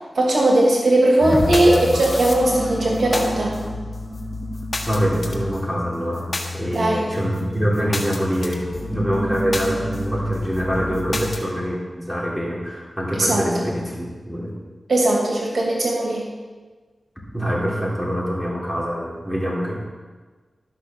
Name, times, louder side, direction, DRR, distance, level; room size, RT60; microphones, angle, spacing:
voice 1, 0.1-3.5 6.7-7.0 13.2-13.6 14.9-16.3, right 1 dB, 75° right, -3 dB, 2.7 m, -18 dB
sound 1, 1.2-11.4, left 1 dB, 45° left, 1.5 m, -29 dB
voice 2, 4.9-6.2 6.5-14.5 17.3-19.8, equal, 5° right, -5 dB, 3.6 m, -24 dB
12.5 x 6.2 x 6.4 m, 1.4 s
wide cardioid pair, 60°, 0 cm